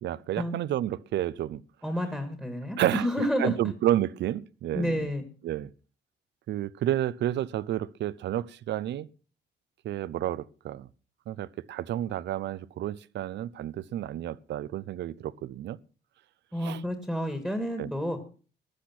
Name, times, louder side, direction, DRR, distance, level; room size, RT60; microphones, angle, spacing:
voice 1, 0.0-1.6 2.8-3.0 3.4-5.1 5.4-5.7 6.5-9.1 9.8-10.9 11.3-15.8 16.6-16.8 17.8-17.9, right 12 dB, 75° right, 0.6 m, -30 dB
voice 2, 1.8-3.6 4.7-5.2 16.5-18.2, equal, ahead, 1.8 m, -30 dB
15.0 x 10.0 x 5.9 m
cardioid pair, 135°, 18 cm